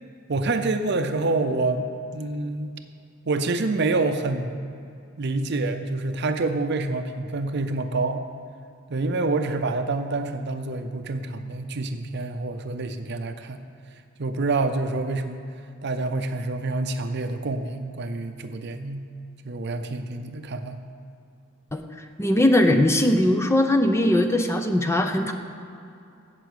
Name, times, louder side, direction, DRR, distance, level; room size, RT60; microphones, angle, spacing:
voice 1, 0.3-1.9 2.1-2.7 3.3-4.6 5.2-8.2 8.9-13.7 14.2-15.5 15.8-19.1 19.4-20.8, right 3 dB, 55° right, 8 dB, 0.6 m, -27 dB
voice 2, 22.2-25.3, left 1 dB, 15° left, 6 dB, 0.6 m, -20 dB
8.2 x 7.6 x 8.0 m, 2.5 s
head